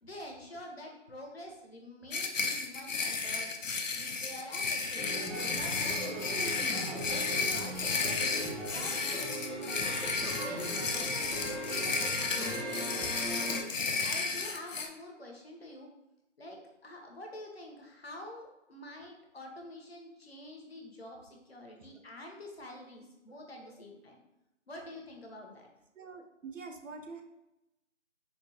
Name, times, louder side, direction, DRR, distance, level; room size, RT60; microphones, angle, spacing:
voice 1, 0.0-3.5 4.0-8.4 8.7-9.9 10.3-11.4 11.7-12.5 13.3-15.9 16.4-24.2 24.7-25.7, left 1 dB, 55° left, 1 dB, 0.7 m, -47 dB
sound 1, 2.1-14.9, left 4 dB, 85° left, 0.6 m, -33 dB
sound 2, 5.0-13.6, right 1 dB, ahead, 0.3 m, -38 dB
voice 2, 25.9-27.2, right 4 dB, 85° right, 4 dB, 0.7 m, -46 dB
4.3 x 2.0 x 2.8 m, 0.92 s
figure-of-eight pair, 170°, 38 cm